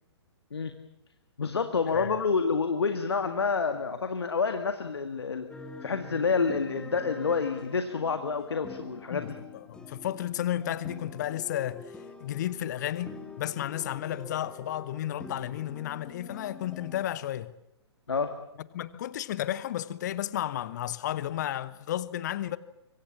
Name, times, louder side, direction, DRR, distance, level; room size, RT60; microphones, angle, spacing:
voice 1, 1.4-5.5 5.8-9.3 18.1-18.4, left 5 dB, 65° left, 1.9 m, -28 dB
sound 1, 5.5-17.0, left 3 dB, 5° left, 2.6 m, -46 dB
voice 2, 9.1-11.8 12.2-17.5 18.7-22.6, left 12 dB, 40° left, 1.1 m, -33 dB
25.0 x 24.5 x 7.2 m
figure-of-eight pair, 120°, 14 cm